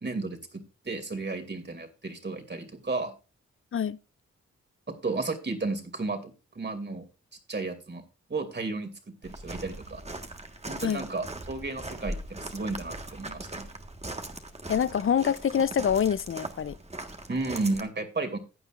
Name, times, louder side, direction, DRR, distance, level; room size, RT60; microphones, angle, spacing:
voice 1, 0.0-3.1 4.9-7.0 7.5-8.0 8.3-8.9 9.2-10.0 10.7-13.7 17.3-18.4, right 3 dB, 40° right, 2.8 m, -33 dB
Walk footsteps, 9.2-17.8, right 2 dB, 20° right, 1.6 m, -40 dB
voice 2, 14.7-16.7, left 8 dB, 45° left, 0.6 m, -26 dB
15.0 x 9.0 x 2.5 m
supercardioid pair, 50°, 29 cm